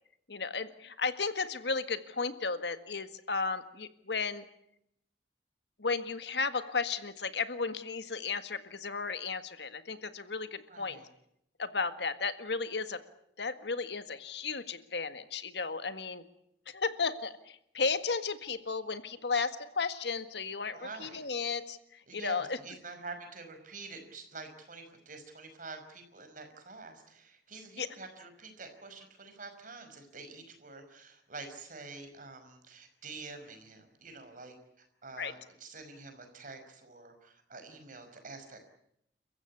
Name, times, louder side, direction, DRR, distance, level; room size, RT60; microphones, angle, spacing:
voice 1, 0.3-4.4 5.8-11.0 11.6-13.0 13.4-16.2 16.7-22.6 27.8-27.9 35.2-35.3, left 4 dB, 70° left, 11 dB, 1.7 m, -34 dB
voice 2, 10.7-11.1 20.7-21.3 22.1-38.6, right 3 dB, 50° right, 7 dB, 5.3 m, -47 dB
30.0 x 15.0 x 9.8 m, 0.75 s
head